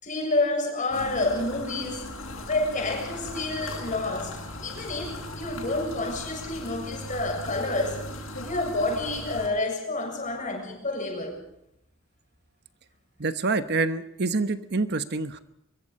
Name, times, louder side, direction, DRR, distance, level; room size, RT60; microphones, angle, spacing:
voice 1, 0.0-2.1 2.4-8.1 8.4-11.4, left 2 dB, 40° left, 7.5 m, -29 dB
sound 1, 0.9-9.5, left 1 dB, 75° left, 6.6 m, -38 dB
voice 2, 13.2-15.4, right 3 dB, 55° right, 1.1 m, -26 dB
23.5 x 23.5 x 5.5 m
head